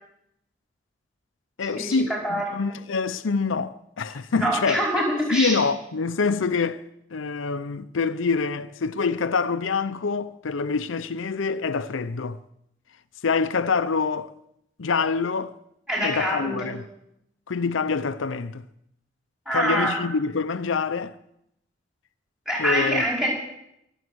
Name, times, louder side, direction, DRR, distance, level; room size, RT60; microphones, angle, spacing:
voice 1, 1.6-4.8 5.3-6.8 7.1-12.4 13.2-14.3 14.8-15.5 16.0-16.8 17.5-18.6 19.5-21.2 22.6-23.1, left 4 dB, 85° left, 0.6 m, -26 dB
voice 2, 4.3-5.6 15.9-16.7 19.4-20.0 22.5-23.3, equal, 5° right, 4.8 m, -25 dB
23.5 x 7.9 x 6.3 m
head